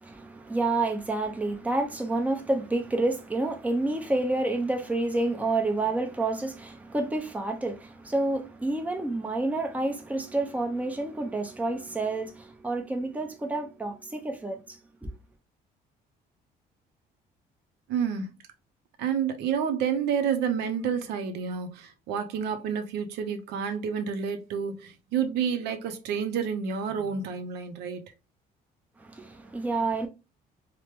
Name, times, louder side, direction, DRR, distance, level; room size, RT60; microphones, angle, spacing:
voice 1, 0.0-15.1 29.0-30.1, right 2 dB, 10° right, 0.6 m, -29 dB
voice 2, 17.9-18.3 19.0-28.1, right 7 dB, 80° right, 0.5 m, -29 dB
3.2 x 2.0 x 2.9 m
cardioid pair, 110°, 17 cm